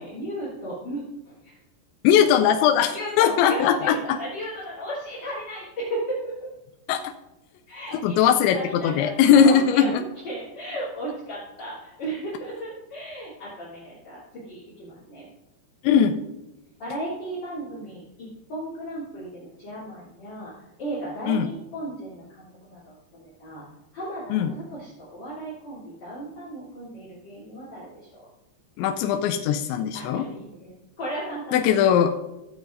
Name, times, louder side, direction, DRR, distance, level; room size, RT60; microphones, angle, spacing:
voice 1, 0.0-1.5 2.9-6.5 7.7-8.2 8.5-9.9 10.2-15.3 16.8-20.5 20.8-23.6 23.9-28.1 29.9-32.0, right 1 dB, 40° left, -9 dB, 3.7 m, -35 dB
voice 2, 2.0-4.2 6.9-7.1 7.9-10.0 15.8-16.2 21.3-21.5 24.3-24.5 28.8-30.3 31.5-32.2, left 8 dB, 85° left, 5 dB, 2.8 m, -20 dB
15.5 x 8.9 x 2.6 m, 0.98 s
omnidirectional pair, 5.4 m